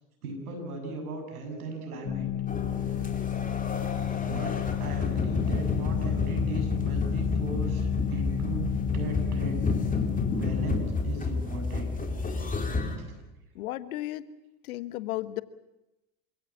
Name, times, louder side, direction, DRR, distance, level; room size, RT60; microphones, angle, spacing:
voice 1, 0.2-2.3 2.7-3.1 4.2-9.6 10.3-11.9 12.5-13.2, right 3 dB, 85° right, 4 dB, 7.2 m, -38 dB
sound 1, 2.0-10.7, left 12 dB, 40° left, 1.8 m, -32 dB
sound 2, 2.5-13.0, left 3 dB, 20° left, 4.2 m, -30 dB
voice 2, 13.5-14.3 14.6-15.4, left 16 dB, 75° left, 14 dB, 1.4 m, -34 dB
27.5 x 17.0 x 8.5 m, 0.96 s
hypercardioid pair, 85°, 43 cm